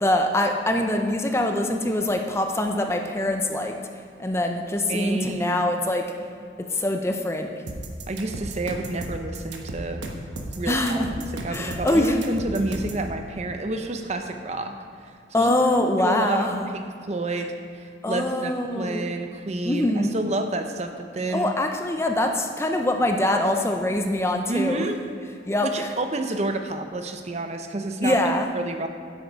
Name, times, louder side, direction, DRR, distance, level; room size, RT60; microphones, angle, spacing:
voice 1, 0.0-3.8 4.2-6.1 6.6-7.5 10.7-11.1 11.5-12.2 15.3-16.7 18.0-19.0 19.6-20.2 21.3-24.9 25.5-25.9 28.0-28.5, left 1 dB, 15° left, 4 dB, 0.6 m, -24 dB
voice 2, 4.9-5.7 8.1-10.0 10.5-14.7 15.4-15.5 16.0-16.5 16.7-21.5 24.5-25.0 25.6-28.2 28.5-28.9, right 2 dB, 40° right, 6 dB, 0.6 m, -29 dB
sound 1, 7.7-13.0, right 2 dB, 85° right, 1.1 m, -34 dB
10.5 x 8.1 x 4.6 m, 2.3 s
head